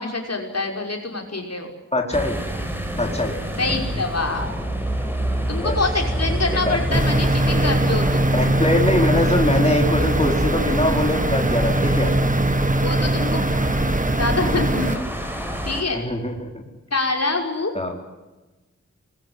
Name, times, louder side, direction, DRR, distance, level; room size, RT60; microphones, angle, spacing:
voice 1, 0.0-1.7 3.6-4.5 5.5-8.3 12.8-13.9 14.2-15.0 15.6-16.0 16.9-17.7, left 3 dB, 60° left, 2 dB, 5.5 m, -25 dB
voice 2, 1.9-2.4 3.0-3.3 5.6-5.8 6.5-6.8 8.3-12.2 15.9-16.6 17.7-17.9, left 1 dB, 20° left, 1 dB, 4.5 m, -23 dB
sound 1, 2.1-15.8, right 1 dB, 5° right, 6.3 m, -28 dB
sound 2, 6.9-15.0, right 1 dB, 25° right, 1.6 m, -21 dB
24.0 x 21.5 x 9.8 m, 1.1 s
cardioid pair, 50°, 29 cm